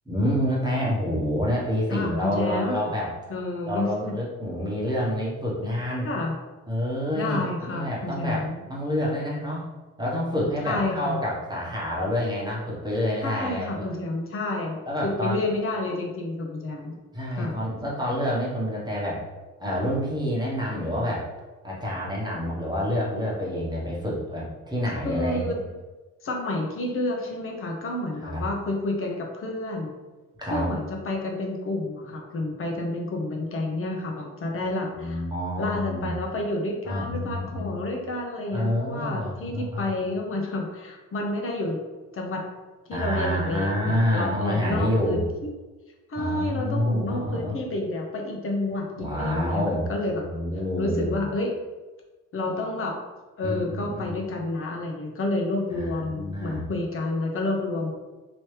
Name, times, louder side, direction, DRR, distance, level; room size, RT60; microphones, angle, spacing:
voice 1, 0.1-3.1 3.6-6.1 6.7-9.7 10.0-13.9 14.9-15.5 17.1-19.2 19.6-21.3 21.6-25.6 28.2-28.4 30.4-30.7 34.9-36.1 36.8-37.7 38.5-39.9 42.9-45.3 46.1-47.5 49.0-49.9 50.2-51.2 53.4-54.2 55.7-56.6, equal, 15° right, -5 dB, 1.2 m, -28 dB
voice 2, 1.9-2.8 3.3-4.2 6.0-6.3 7.1-8.6 10.6-11.2 13.2-16.9 17.4-17.5 25.0-25.6 26.2-29.9 30.4-35.2 35.6-41.8 42.1-42.4 42.9-45.2 46.1-49.6 49.9-50.2 50.8-51.5 52.3-53.0 53.4-57.9, left 2 dB, 45° left, 0 dB, 0.8 m, -29 dB
3.0 x 2.9 x 3.3 m, 1.2 s
cardioid pair, 90°, 30 cm